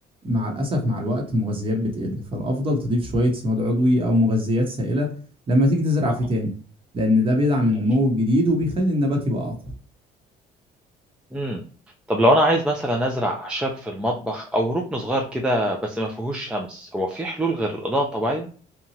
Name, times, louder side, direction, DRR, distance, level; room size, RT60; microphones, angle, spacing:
voice 1, 0.2-5.1 5.5-6.5 6.9-9.7, left 1 dB, 30° right, 3 dB, 0.9 m, -22 dB
voice 2, 11.3-11.6 12.1-18.5, equal, 5° right, 0 dB, 0.4 m, -24 dB
2.9 x 2.2 x 2.7 m, 0.41 s
cardioid pair, 110°, 17 cm